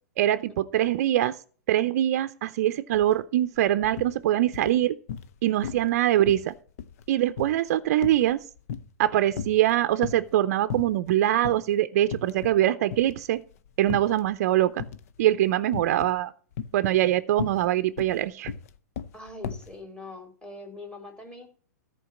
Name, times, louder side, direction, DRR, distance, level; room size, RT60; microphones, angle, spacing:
voice 1, 0.2-1.4 1.7-5.0 5.4-6.5 7.1-8.4 9.0-13.4 13.8-14.8 15.2-16.3 16.7-18.5, right 13 dB, 60° right, 11 dB, 0.6 m, -23 dB
sound 1, 2.9-3.1 3.4-4.1 4.5-5.4 5.6-6.0 6.3-9.1 9.3-10.3 10.7-11.1 11.4-11.6 12.0-12.6 12.9-14.3 14.8-15.2 15.7-16.2 16.5-19.7, left 7 dB, 60° left, 0.8 m, -36 dB
voice 2, 19.1-21.5, left 2 dB, 10° left, 3 dB, 2.8 m, -42 dB
14.0 x 4.6 x 7.1 m, 0.43 s
hypercardioid pair, 120°, 9 cm